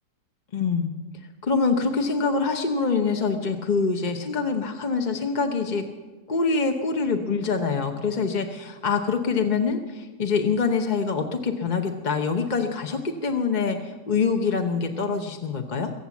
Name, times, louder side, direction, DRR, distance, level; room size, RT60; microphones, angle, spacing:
voice 1, 0.5-0.9 1.4-5.8 6.3-15.9, left 5 dB, 35° left, 4 dB, 0.8 m, -25 dB
23.0 x 8.0 x 7.2 m, 1.3 s
omnidirectional pair, 1.8 m